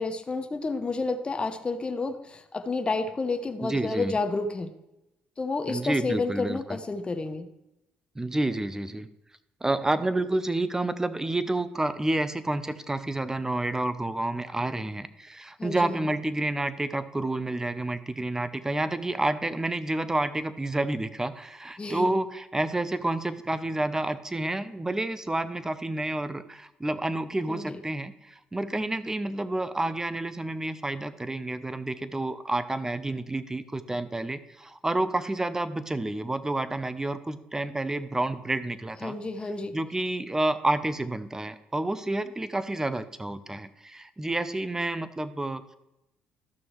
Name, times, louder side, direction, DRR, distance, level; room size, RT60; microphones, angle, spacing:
voice 1, 0.0-4.7 5.4-7.5 15.6-16.1 21.8-22.1 27.5-27.8 39.0-39.8, left 3 dB, 25° left, 7 dB, 0.8 m, -30 dB
voice 2, 3.6-4.2 5.7-6.8 8.2-9.1 9.6-39.2 39.7-45.7, right 2 dB, 15° right, 13 dB, 0.7 m, -29 dB
13.5 x 6.0 x 3.2 m, 0.90 s
supercardioid pair, 75°, 4 cm